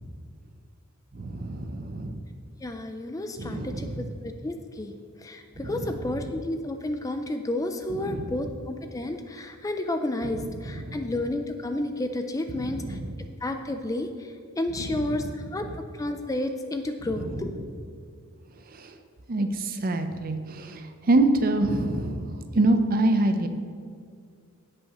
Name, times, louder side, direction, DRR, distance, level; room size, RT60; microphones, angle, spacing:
voice 1, 1.1-2.2 3.4-4.1 5.6-5.9 7.9-8.3 10.2-11.0 12.5-13.1 14.8-15.3 17.1-17.5 18.8-18.9 19.3-23.5, right 2 dB, 40° right, 7 dB, 0.6 m, -27 dB
voice 2, 2.6-4.9 5.2-13.0 13.4-15.7 16.0-17.6, left 1 dB, 15° left, 6 dB, 0.3 m, -31 dB
16.5 x 5.5 x 3.0 m, 2.2 s
head